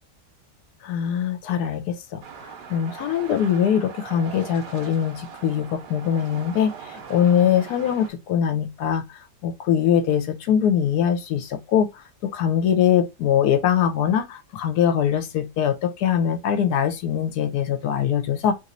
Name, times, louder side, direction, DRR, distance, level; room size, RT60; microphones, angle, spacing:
voice 1, 0.8-9.0 9.4-18.5, left 9 dB, 75° left, 1.1 m, -22 dB
sound 1, 2.2-8.1, right 7 dB, 85° right, 1.4 m, -41 dB
3.2 x 2.9 x 2.5 m
omnidirectional pair, 1.8 m